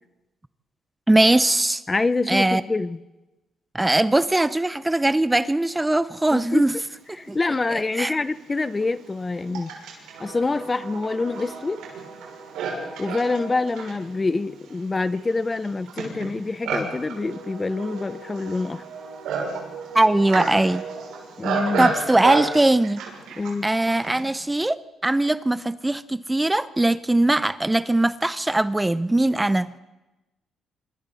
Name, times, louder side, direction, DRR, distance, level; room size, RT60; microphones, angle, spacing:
voice 1, 1.1-1.8 2.3-2.6 3.7-6.8 7.3-7.4 7.7-8.1 19.9-20.8 21.8-23.0 23.6-29.7, right 1 dB, 10° right, 0.6 m, -20 dB
voice 2, 1.9-3.0 6.3-6.7 7.2-9.7 10.2-11.8 13.0-18.8 21.4-21.9 23.4-23.7, left 3 dB, 25° left, 0.7 m, -26 dB
Livestock farm animals working animals, 7.5-7.6 8.4-24.3, right 5 dB, 90° right, 6.5 m, -32 dB
26.5 x 25.0 x 4.2 m
cardioid pair, 90°, 0 cm